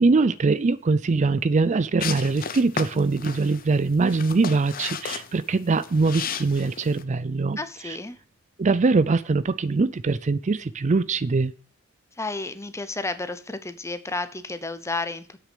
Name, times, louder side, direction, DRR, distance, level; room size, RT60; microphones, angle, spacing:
voice 1, 0.0-7.6 7.9-8.0 8.6-11.5, right 3 dB, 35° right, 16 dB, 0.4 m, -22 dB
sound 1, 2.0-7.0, left 7 dB, 45° left, 0.8 m, -34 dB
voice 2, 7.6-8.2 12.2-15.4, left 3 dB, 15° left, 12 dB, 0.8 m, -32 dB
8.3 x 6.4 x 8.3 m, 0.42 s
head